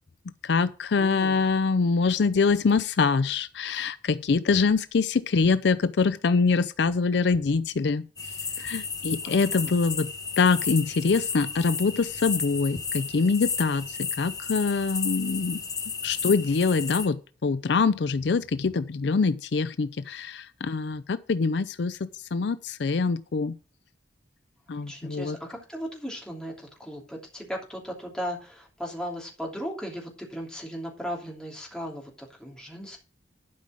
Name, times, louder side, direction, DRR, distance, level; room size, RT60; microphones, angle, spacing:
voice 1, 0.4-8.0 8.6-10.1 10.4-15.6 16.0-23.6 24.7-25.4, left 4 dB, 60° left, 0.4 m, -24 dB
voice 2, 1.0-1.4 9.2-9.8 24.9-33.0, equal, 5° left, 2.9 m, -37 dB
sound 1, 8.2-17.1, left 5 dB, 20° left, 1.1 m, -33 dB
11.5 x 5.4 x 6.3 m
head